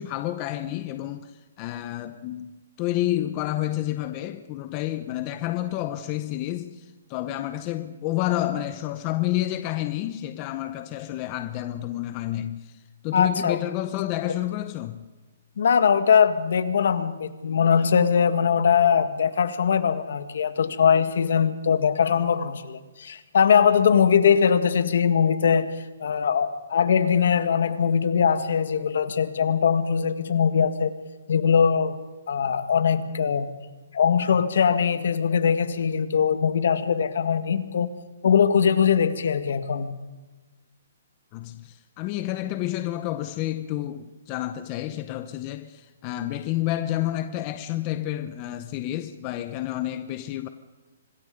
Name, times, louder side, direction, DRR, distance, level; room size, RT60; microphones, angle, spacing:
voice 1, 0.0-15.0 41.3-50.5, left 14 dB, 25° left, 0.8 m, -30 dB
voice 2, 13.1-13.6 14.2-14.3 15.6-25.7 26.0-30.9 31.3-32.0 32.3-33.5 33.9-37.9 38.2-40.0, left 7 dB, 60° left, 1.8 m, -21 dB
25.5 x 20.5 x 5.3 m
hypercardioid pair, 170°, 0 cm